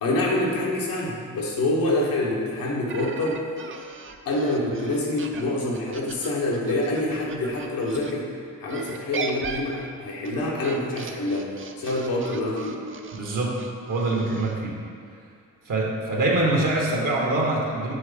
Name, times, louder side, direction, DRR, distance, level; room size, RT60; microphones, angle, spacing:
voice 1, 0.0-3.4 4.2-8.3 8.6-12.8, left 1 dB, 90° left, -3 dB, 1.2 m, -26 dB
sound 1, 2.9-8.1 8.7-14.5, right 5 dB, 40° right, 0.5 m, -38 dB
voice 2, 13.1-13.6 13.9-14.7 15.7-17.9, right 2 dB, 65° right, -2 dB, 1.1 m, -24 dB
4.7 x 4.1 x 4.9 m, 2.3 s
cardioid pair, 70°, 34 cm